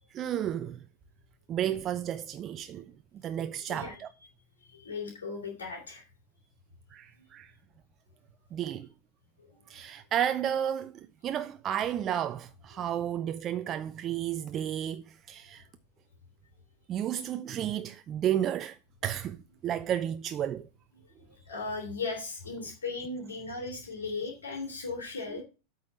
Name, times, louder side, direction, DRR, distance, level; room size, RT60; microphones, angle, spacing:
voice 1, 0.1-0.8 1.5-2.8 3.2-4.1 6.9-7.5 8.5-8.9 9.7-15.6 16.9-18.8 19.0-20.7 25.3-25.4, right 10 dB, 30° right, 0.4 m, -32 dB
voice 2, 3.7-4.0 4.6-6.0 7.2-7.3 9.5-9.9 21.3-25.4, left 4 dB, 65° left, 2.6 m, -37 dB
8.5 x 4.0 x 6.2 m
figure-of-eight pair, 90°, 0 cm